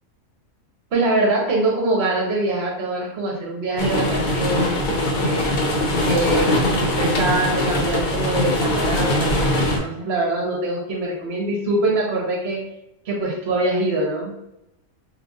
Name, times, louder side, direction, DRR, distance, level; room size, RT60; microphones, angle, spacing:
voice 1, 0.9-5.5 6.0-12.6 13.1-14.3, right 2 dB, 55° right, 0 dB, 1.0 m, -24 dB
sound 1, 3.8-9.8, left 1 dB, 65° left, 0.5 m, -21 dB
3.1 x 2.5 x 2.5 m, 0.88 s
omnidirectional pair, 1.4 m